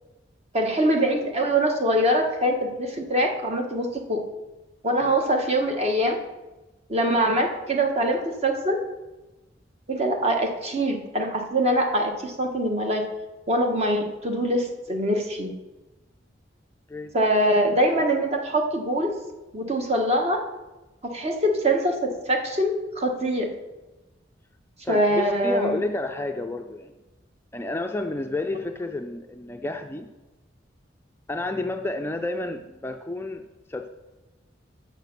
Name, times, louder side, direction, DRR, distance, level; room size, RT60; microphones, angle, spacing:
voice 1, 0.5-4.2 4.8-6.2 6.9-8.8 9.9-13.0 13.5-15.5 17.1-19.1 19.5-20.4 21.0-23.5 24.9-25.8, right 1 dB, 35° right, 3 dB, 1.3 m, -23 dB
voice 2, 24.8-26.9 27.5-30.1 31.3-33.4 33.7-33.9, left 2 dB, 15° left, 5 dB, 0.4 m, -30 dB
6.7 x 6.6 x 6.6 m, 1.1 s
head